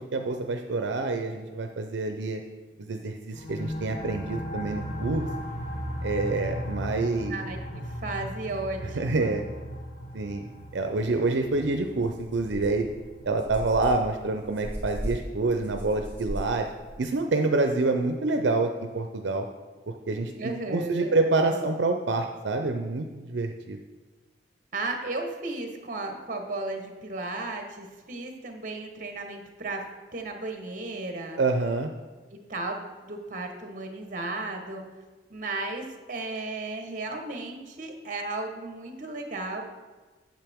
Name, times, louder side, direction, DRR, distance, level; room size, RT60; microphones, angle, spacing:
voice 1, 0.1-2.4 2.8-5.3 6.0-7.4 9.0-9.4 10.1-10.4 10.7-12.9 13.2-16.7 17.0-18.7 18.9-19.5 20.1-23.8 31.4-31.9, right 3 dB, 80° right, 5 dB, 0.5 m, -27 dB
sound 1, 3.3-14.7, equal, 40° left, 1.1 m, -37 dB
voice 2, 7.3-9.4 20.4-21.2 21.4-21.7 24.7-29.8 30.1-31.4 32.3-34.8 35.3-39.6, right 2 dB, 45° right, 4 dB, 1.1 m, -34 dB
sound 2, 11.4-11.5 11.9-17.0, equal, 10° left, 2.4 m, -38 dB
8.9 x 7.4 x 3.5 m, 1.3 s
head